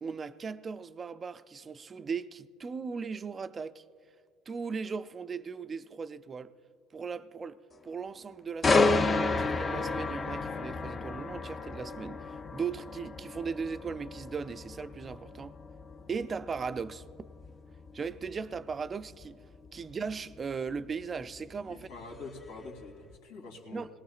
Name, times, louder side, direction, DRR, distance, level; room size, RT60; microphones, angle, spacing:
voice 1, 0.0-3.8 4.5-6.5 6.9-15.6 16.1-17.0 17.9-19.4 19.7-21.9 23.7-23.9, right 5 dB, 25° right, 0.4 m, -38 dB
sound 1, 8.6-22.5 22.9-23.1, left 3 dB, 25° left, 0.6 m, -32 dB
voice 2, 21.7-23.9, left 3 dB, 90° left, 2.8 m, -45 dB
20.5 x 18.0 x 2.4 m
supercardioid pair, 115°, 0 cm